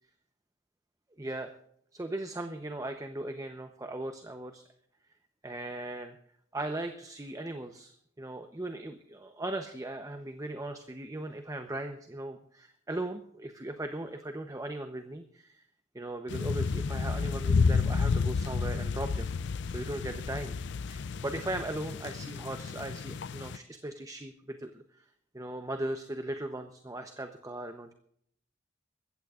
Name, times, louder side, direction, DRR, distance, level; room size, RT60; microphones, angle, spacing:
voice 1, 1.2-1.5 1.9-4.6 5.4-6.2 6.5-15.6 15.9-19.3 19.7-20.5 20.9-25.0 25.3-27.9, right 1 dB, 20° right, 7 dB, 0.8 m, -38 dB
sound 1, 16.3-23.6, left 5 dB, 65° left, 0.5 m, -31 dB
21.5 x 15.5 x 2.5 m, 0.67 s
head